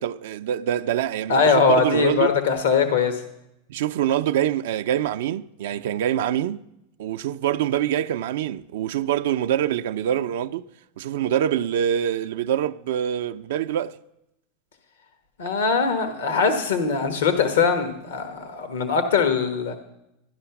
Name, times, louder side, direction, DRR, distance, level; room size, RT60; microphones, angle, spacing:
voice 1, 0.0-2.3 3.7-6.6 7.0-10.7 11.0-14.0, right 10 dB, 75° right, 0.4 m, -25 dB
voice 2, 1.3-3.2 15.4-19.8, left 5 dB, 85° left, 1.2 m, -21 dB
12.0 x 11.0 x 5.8 m
hypercardioid pair, 115°, 0 cm